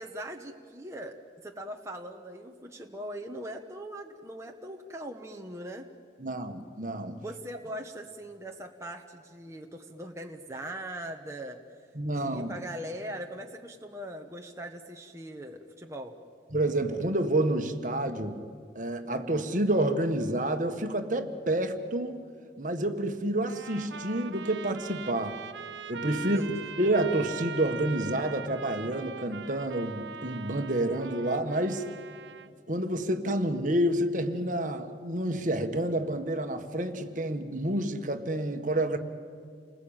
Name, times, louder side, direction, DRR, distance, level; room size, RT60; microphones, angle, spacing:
voice 1, 0.0-5.9 7.2-11.8 12.1-16.1 26.2-26.7, right 1 dB, 15° right, 2 dB, 1.2 m, -41 dB
voice 2, 6.2-7.2 11.9-12.5 16.5-18.4 18.7-22.2 22.6-25.4 25.9-26.4 26.8-31.8 32.7-39.0, right 1 dB, 45° right, 7 dB, 1.7 m, -29 dB
Trumpet, 23.4-32.5, right 6 dB, 80° right, 1.2 m, -41 dB
29.5 x 20.5 x 9.0 m, 2.2 s
head